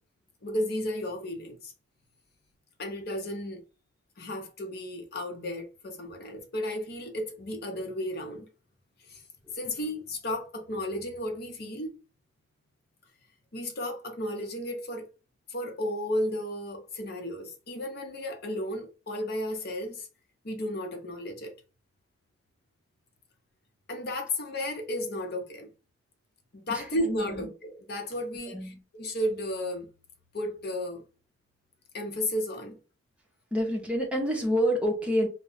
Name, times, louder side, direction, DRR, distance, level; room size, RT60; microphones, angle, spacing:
voice 1, 0.4-1.7 2.8-3.6 4.2-8.5 9.1-9.2 9.5-12.0 13.5-15.1 15.5-20.1 20.4-21.5 23.9-25.7 26.5-29.9 30.3-31.0 31.9-32.8, left 1 dB, 55° left, 0.7 m, -33 dB
voice 2, 27.1-27.4 28.5-28.8 33.5-35.3, equal, 5° right, 0.7 m, -28 dB
2.3 x 2.1 x 3.8 m
head